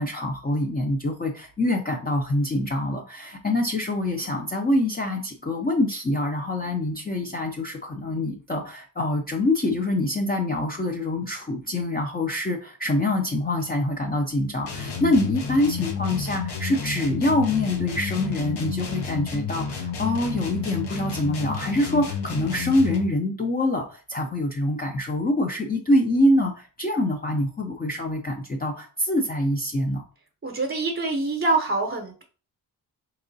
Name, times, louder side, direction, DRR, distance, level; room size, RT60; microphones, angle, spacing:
voice 1, 0.0-30.0, left 1 dB, 20° left, 1 dB, 0.6 m, -25 dB
sound 1, 14.7-23.1, left 5 dB, 70° left, 0.9 m, -31 dB
voice 2, 30.4-32.2, right 3 dB, 30° right, 2 dB, 0.7 m, -25 dB
3.6 x 3.0 x 2.6 m, 0.37 s
supercardioid pair, 55°, 42 cm